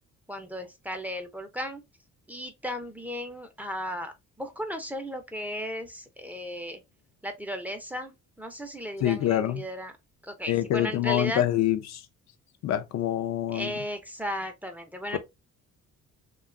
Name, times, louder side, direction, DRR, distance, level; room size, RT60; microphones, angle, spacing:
voice 1, 0.3-1.8 2.3-6.8 7.2-9.9 10.2-11.4 13.5-15.2, equal, 5° right, 0.5 m, -35 dB
voice 2, 9.0-9.6 10.5-12.0 12.6-13.7, left 12 dB, 60° left, 0.5 m, -26 dB
2.7 x 2.3 x 2.4 m
cardioid pair, 90°, 30 cm